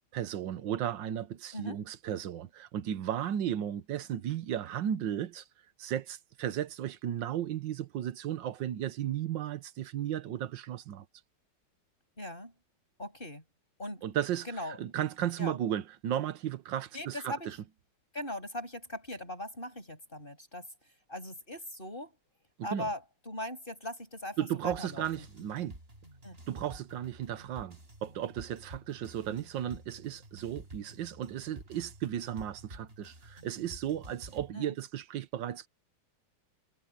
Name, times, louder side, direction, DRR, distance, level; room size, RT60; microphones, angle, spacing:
voice 1, 0.1-5.4 5.8-11.0 14.0-14.5 14.8-17.6 22.6-22.9 24.4-25.8 26.5-35.7, right 10 dB, 65° right, 1.6 m, -35 dB
voice 2, 12.2-12.5 13.0-13.4 13.8-14.0 14.4-14.8 15.4-15.6 16.9-17.6 18.1-20.7 21.1-22.1 22.6-25.3 26.2-26.4 34.5-34.8, left 1 dB, 25° left, 7.2 m, -40 dB
sound 1, 24.6-34.5, right 1 dB, 25° right, 7.7 m, -51 dB
omnidirectional pair, 2.2 m